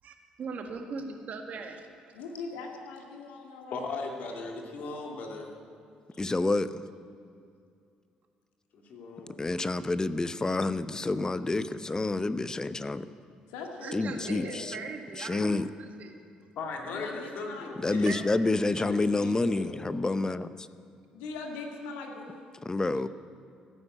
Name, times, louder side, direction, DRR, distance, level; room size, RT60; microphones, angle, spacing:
voice 1, 0.0-1.9 13.8-16.1 18.1-18.3, right 5 dB, 55° right, 4 dB, 1.8 m, -39 dB
voice 2, 2.1-3.8 4.2-4.4 13.5-14.9 16.8-18.1 21.1-22.6, left 3 dB, 80° left, 1 dB, 1.9 m, -41 dB
voice 3, 3.7-5.5 8.7-9.5 16.6-18.1 18.6-19.8, left 3 dB, 60° left, 1 dB, 2.5 m, -38 dB
voice 4, 6.2-6.7 9.4-13.1 13.9-14.7 15.2-15.7 17.8-20.5 22.7-23.1, left 2 dB, 20° left, 14 dB, 0.7 m, -28 dB
14.5 x 9.8 x 7.7 m, 2.4 s
hypercardioid pair, 55°, 3 cm